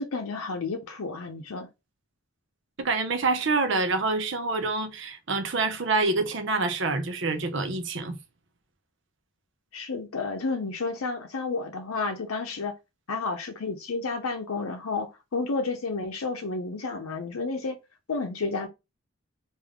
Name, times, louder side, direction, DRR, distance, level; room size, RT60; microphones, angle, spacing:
voice 1, 0.0-1.7 9.7-12.7 13.1-17.8 18.1-18.7, left 3 dB, 85° left, 0.6 m, -31 dB
voice 2, 2.8-8.2, right 3 dB, 55° right, 0.6 m, -26 dB
3.5 x 2.6 x 3.5 m
head